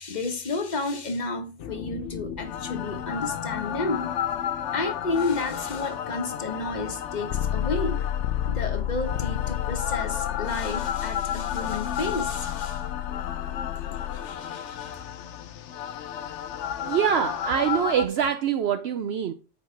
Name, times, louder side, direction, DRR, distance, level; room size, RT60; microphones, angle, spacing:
voice 1, 0.0-4.2 4.7-8.0 8.5-12.8 13.9-15.0, left 3 dB, 40° left, 1.3 m, -31 dB
sound 1, 1.6-18.1, left 10 dB, 80° left, 0.9 m, -31 dB
voice 2, 16.8-19.3, right 8 dB, 65° right, 0.8 m, -24 dB
8.2 x 4.9 x 4.4 m
omnidirectional pair, 1.2 m